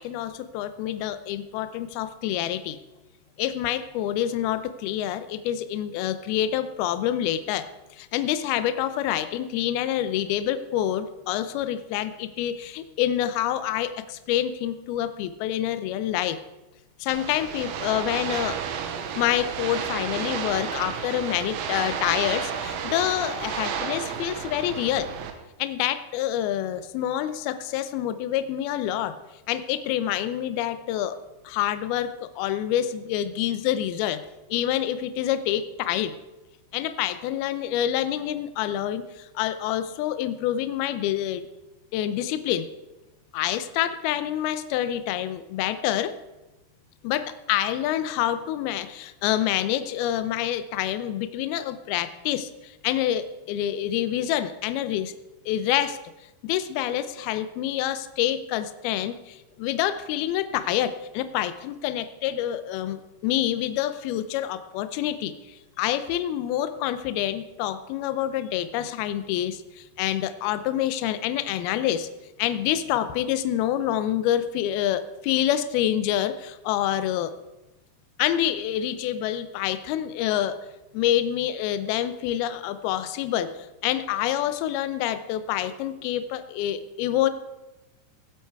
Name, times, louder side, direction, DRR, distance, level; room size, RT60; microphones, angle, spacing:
voice 1, 0.0-2.8 3.4-16.4 17.0-18.6 19.2-25.1 25.6-29.1 29.5-31.2 31.4-34.2 34.5-36.2 36.7-41.4 41.9-42.7 43.3-46.1 47.0-55.1 55.5-56.0 56.4-72.1 72.4-77.3 78.2-80.6 80.9-87.3, left 11 dB, 85° left, 11 dB, 2.2 m, -27 dB
sound 1, 17.1-25.3, right 7 dB, 85° right, 3.3 m, -32 dB
17.5 x 8.0 x 4.7 m, 1.0 s
omnidirectional pair, 5.3 m